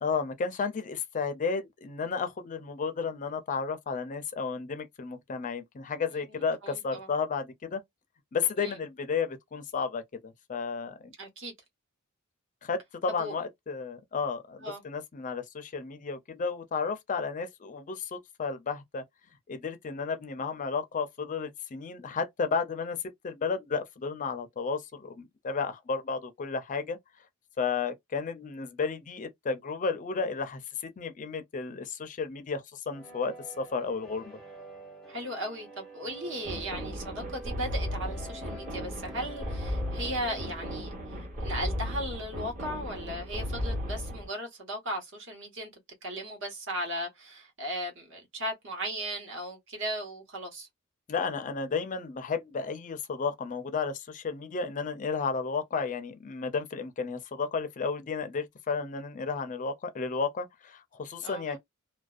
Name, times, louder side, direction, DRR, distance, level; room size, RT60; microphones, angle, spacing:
voice 1, 0.0-7.8 8.3-11.1 12.6-19.0 19.5-23.0 23.2-27.0 27.6-34.4 51.1-61.6, left 5 dB, 35° left, 0.4 m, -33 dB
voice 2, 6.3-7.1 8.6-8.8 11.2-11.5 13.1-13.4 14.6-14.8 35.1-45.7 46.0-50.7 61.2-61.6, right 1 dB, 60° right, 1.2 m, -37 dB
sound 1, 32.9-40.7, right 1 dB, ahead, 0.7 m, -47 dB
sound 2, 36.4-44.3, left 1 dB, 35° right, 1.2 m, -35 dB
2.5 x 2.1 x 2.4 m
head